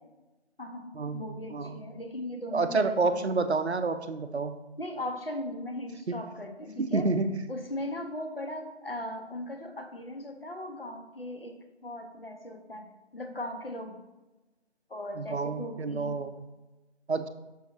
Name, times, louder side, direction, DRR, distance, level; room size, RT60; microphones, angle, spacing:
voice 1, 0.6-3.3 4.8-7.1 7.5-11.6 11.8-14.0 14.9-16.2, left 1 dB, 55° left, 4 dB, 0.8 m, -38 dB
voice 2, 1.5-1.8 2.5-4.6 6.1-6.2 6.8-7.3 15.2-16.3 17.1-17.3, right 3 dB, 70° right, 10 dB, 0.5 m, -28 dB
6.3 x 4.9 x 3.2 m, 1.1 s
figure-of-eight pair, 170°, 34 cm